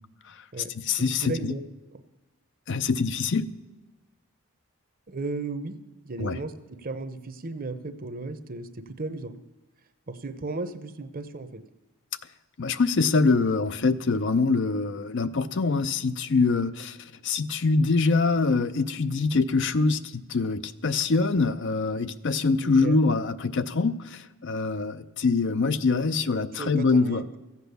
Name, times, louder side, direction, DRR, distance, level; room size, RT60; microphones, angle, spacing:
voice 1, 0.2-1.5 2.7-3.4 6.2-6.4 12.6-27.2, left 4 dB, 55° left, 12 dB, 0.5 m, -24 dB
voice 2, 1.0-1.6 5.1-5.7 6.0-6.5 6.8-9.3 10.1-11.6 22.6-23.0 26.6-27.4, right 3 dB, 40° right, 11 dB, 0.8 m, -35 dB
14.5 x 8.3 x 6.8 m, 1.1 s
head